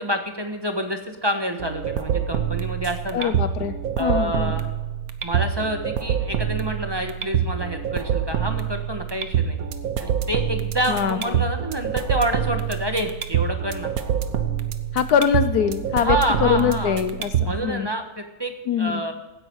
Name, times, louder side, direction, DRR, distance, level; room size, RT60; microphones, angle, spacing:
voice 1, 0.0-3.3 4.0-4.7 5.2-9.6 10.0-13.9 15.9-17.0 17.5-18.5 18.8-19.1, right 1 dB, 15° right, 5 dB, 1.2 m, -28 dB
sound 1, 1.6-17.6, right 8 dB, 70° right, 1.4 m, -26 dB
voice 2, 3.1-3.7 4.0-4.5 10.9-11.4 14.9-17.9 18.7-19.1, left 8 dB, 80° left, 12 dB, 1.3 m, -23 dB
16.5 x 10.0 x 4.7 m, 1.0 s
omnidirectional pair, 1.7 m